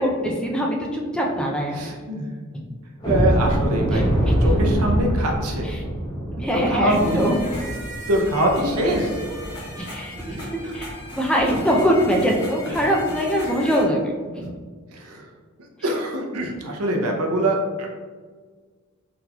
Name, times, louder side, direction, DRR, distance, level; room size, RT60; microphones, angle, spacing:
voice 1, 0.0-1.8 3.9-4.3 5.6-5.8 6.3-7.4 9.8-10.5 10.7-14.1, equal, 5° left, -2 dB, 0.4 m, -23 dB
voice 2, 1.7-2.3 3.1-5.7 6.5-7.2 8.1-9.1 10.3-10.7 13.4-13.7 14.4-14.5 14.9-15.3 15.8-17.9, right 1 dB, 90° right, 1 dB, 0.6 m, -24 dB
sound 1, 3.0-9.7 10.1-10.3 10.7-10.8 11.3-11.5, equal, 20° left, 0.9 m, -24 dB
sound 2, 6.9-13.8, equal, 50° left, 1.3 m, -37 dB
3.8 x 3.0 x 2.3 m, 1.5 s
head